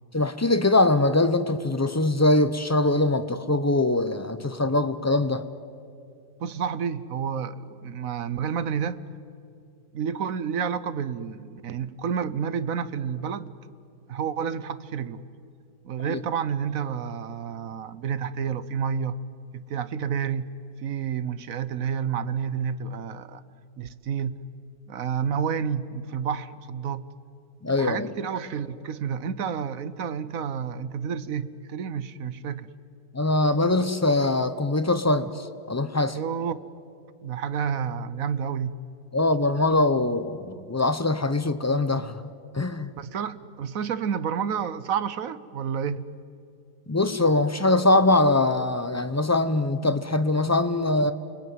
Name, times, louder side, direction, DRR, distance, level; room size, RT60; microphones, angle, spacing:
voice 1, 0.1-5.4 16.0-16.2 27.6-28.1 33.1-36.2 39.1-42.2 42.5-42.9 46.9-51.1, left 2 dB, 20° left, 11 dB, 0.4 m, -22 dB
voice 2, 6.4-9.0 9.9-13.5 14.1-15.2 15.8-19.2 19.5-20.5 20.8-23.4 23.8-24.4 24.9-27.0 27.8-32.7 36.1-36.6 37.2-38.8 43.0-46.1, right 7 dB, 60° right, 15 dB, 1.2 m, -30 dB
29.5 x 21.5 x 9.4 m, 2.5 s
omnidirectional pair, 1.7 m